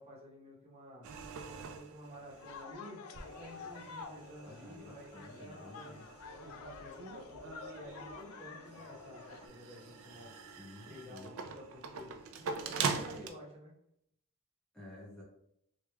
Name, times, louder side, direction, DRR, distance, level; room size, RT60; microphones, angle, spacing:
voice 1, 0.0-6.1 6.4-10.5 10.9-13.7, equal, 30° right, -3 dB, 0.9 m, -52 dB
sound 1, 1.0-2.6 3.1-13.3, right 5 dB, 65° right, 0.4 m, -43 dB
sound 2, 2.3-9.5, left 5 dB, 70° left, 0.4 m, -49 dB
voice 2, 4.4-6.1 10.6-11.3 14.7-15.2, left 1 dB, 5° left, -6 dB, 0.6 m, -52 dB
3.1 x 2.3 x 3.3 m, 0.74 s
head